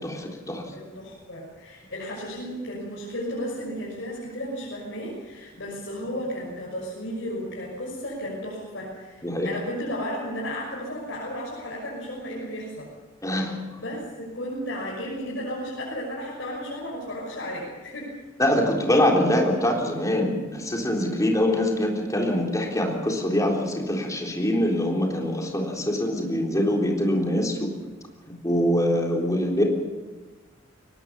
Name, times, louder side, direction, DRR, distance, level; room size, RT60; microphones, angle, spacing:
voice 1, 0.0-0.6 9.2-9.5 13.2-13.8 18.4-27.7 28.4-29.6, left 1 dB, 15° left, 0 dB, 3.8 m, -24 dB
voice 2, 0.7-12.9 13.8-18.1, equal, 65° left, -5 dB, 6.3 m, -34 dB
22.5 x 20.0 x 7.1 m, 1.3 s
head